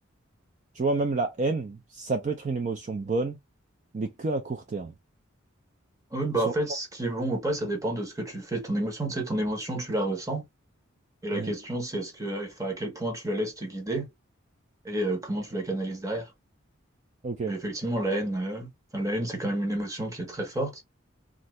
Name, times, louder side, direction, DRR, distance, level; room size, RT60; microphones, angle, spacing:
voice 1, 0.7-3.4 3.9-4.9 6.4-6.5 11.3-11.5 17.2-17.5, right 3 dB, 35° right, 0.4 m, -29 dB
voice 2, 6.1-10.4 11.2-14.1 14.8-16.3 17.4-20.8, right 1 dB, 15° right, 0.9 m, -30 dB
2.7 x 2.5 x 3.0 m
head